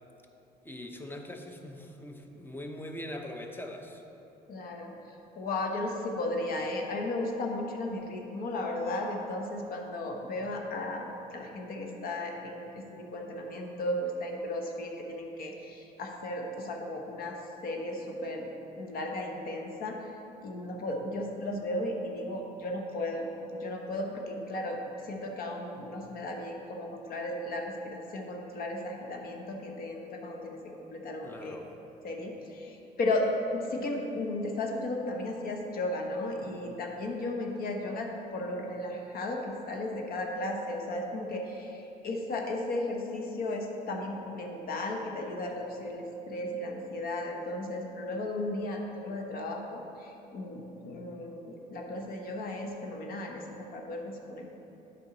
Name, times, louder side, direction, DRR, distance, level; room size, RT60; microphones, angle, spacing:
voice 1, 0.6-4.0 31.2-31.7, left 1 dB, 10° left, 4 dB, 0.6 m, -42 dB
voice 2, 4.5-18.5 18.7-20.1 20.4-31.6 32.0-54.5, left 1 dB, 60° left, 1 dB, 1.0 m, -35 dB
8.4 x 5.5 x 3.9 m, 3.0 s
cardioid pair, 110°, 17 cm